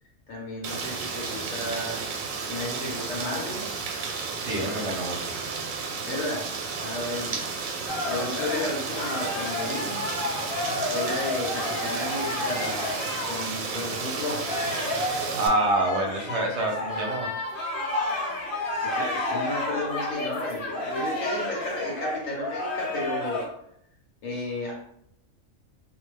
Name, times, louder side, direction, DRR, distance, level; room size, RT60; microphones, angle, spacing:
voice 1, 0.3-2.0 2.4-3.6 4.5-4.7 6.1-6.5 6.8-7.4 8.1-10.0 10.8-14.5 18.8-23.4 24.2-24.7, left 2 dB, 75° left, -3 dB, 1.2 m, -33 dB
Rain, 0.6-15.5, right 4 dB, 90° right, 1.0 m, -32 dB
voice 2, 4.4-5.3 15.4-17.3, right 2 dB, 65° right, 1 dB, 0.8 m, -26 dB
sound 1, 7.9-13.9 14.2-23.4, left 2 dB, 55° left, 0.7 m, -31 dB
2.6 x 2.2 x 3.1 m, 0.70 s
omnidirectional pair, 1.4 m